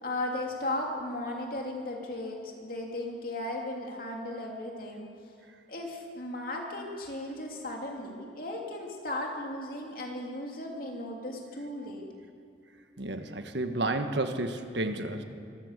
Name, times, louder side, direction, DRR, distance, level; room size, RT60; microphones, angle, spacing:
voice 1, 0.0-5.1 5.7-12.0, left 1 dB, 50° left, 0 dB, 3.0 m, -36 dB
voice 2, 13.0-15.2, right 2 dB, 70° right, 7 dB, 1.5 m, -31 dB
25.0 x 15.5 x 6.7 m, 2.4 s
head